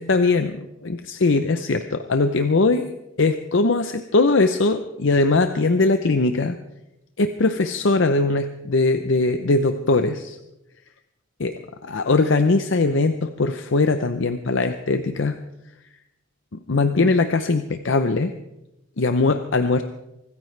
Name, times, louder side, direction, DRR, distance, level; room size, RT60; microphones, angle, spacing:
voice 1, 0.0-2.8 3.2-6.6 7.2-10.4 11.4-11.6 11.8-15.4 16.5-18.3 19.0-19.8, left 3 dB, 65° left, 8 dB, 0.7 m, -20 dB
25.0 x 14.0 x 3.3 m, 0.91 s
head